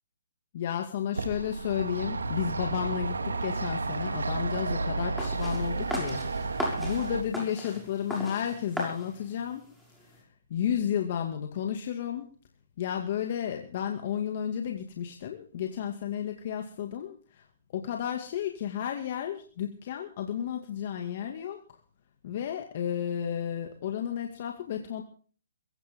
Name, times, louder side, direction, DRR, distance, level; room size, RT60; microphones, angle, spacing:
voice 1, 0.5-9.6 10.5-12.3 12.8-17.4 17.7-21.8 22.2-25.0, left 9 dB, 45° left, 3 dB, 2.2 m, -32 dB
sound 1, 1.1-7.2, right 3 dB, 90° right, 2.3 m, -32 dB
sound 2, 5.2-10.2, left 1 dB, ahead, 6.8 m, -37 dB
22.0 x 16.5 x 3.7 m, 0.43 s
hypercardioid pair, 145°, 0 cm